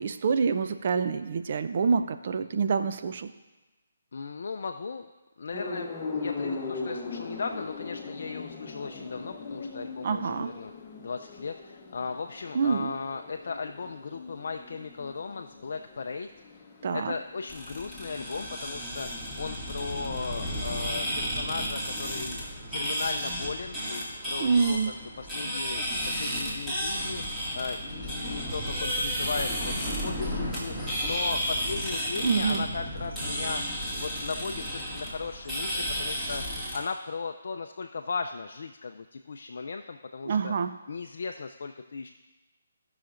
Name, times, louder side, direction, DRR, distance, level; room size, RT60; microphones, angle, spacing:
voice 1, 0.0-3.3 10.0-10.5 12.5-12.9 16.8-17.1 24.4-24.9 32.2-32.6 40.3-40.8, right 5 dB, 50° right, 9 dB, 0.5 m, -26 dB
voice 2, 4.1-5.1 5.4-10.7 11.0-16.3 16.9-22.4 22.7-33.6 34.0-36.4 36.7-40.5 40.9-42.1, left 4 dB, 65° left, 5 dB, 0.4 m, -37 dB
sound 1, 5.5-21.4, left 4 dB, 25° left, 1.0 m, -40 dB
sound 2, 17.5-36.8, equal, 10° right, 2.1 m, -32 dB
17.0 x 5.9 x 2.6 m, 1.1 s
figure-of-eight pair, 150°, 0 cm